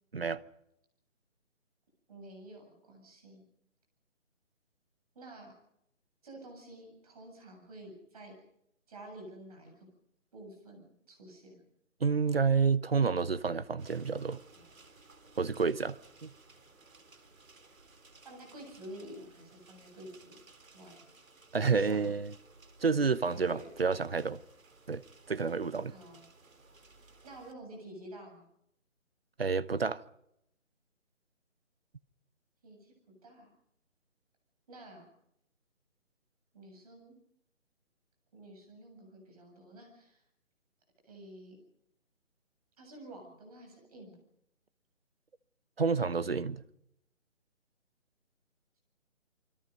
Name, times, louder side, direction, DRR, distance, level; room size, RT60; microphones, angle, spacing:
voice 1, 2.1-3.4 5.1-5.5 6.2-8.4 8.9-9.9 10.3-11.6 14.5-14.6 18.2-20.3 20.7-21.1 21.7-22.1 23.3-23.7 25.9-26.2 27.2-28.5 32.6-32.9 33.2-33.5 34.7-35.1 36.5-37.2 38.3-40.2 41.1-41.5 42.8-44.2, right 1 dB, 25° right, 7.8 m, -50 dB
voice 2, 12.0-14.4 15.4-16.3 21.5-22.3 22.8-24.4 24.9-25.0 25.3-25.9 29.4-30.0 45.8-46.6, right 5 dB, 45° right, 1.0 m, -29 dB
sound 1, 13.8-27.5, right 3 dB, 75° right, 4.2 m, -59 dB
28.0 x 24.5 x 5.3 m
figure-of-eight pair, 170°, 40 cm